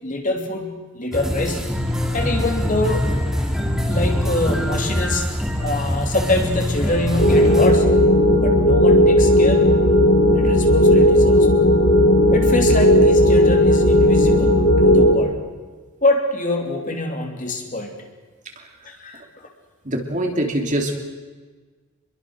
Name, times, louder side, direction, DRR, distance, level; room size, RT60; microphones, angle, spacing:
voice 1, 0.0-1.7 2.1-3.1 3.9-5.3 5.6-8.0 8.4-9.7 10.3-11.6 12.3-15.3 16.0-17.9 18.8-19.5, left 2 dB, 35° left, 3 dB, 3.1 m, -25 dB
sound 1, 1.1-7.7, left 1 dB, ahead, 2.6 m, -23 dB
sound 2, 7.2-15.1, equal, 70° left, 3.8 m, -14 dB
voice 2, 19.8-21.0, right 1 dB, 35° right, 3 dB, 3.1 m, -23 dB
27.0 x 22.5 x 6.5 m, 1.4 s
head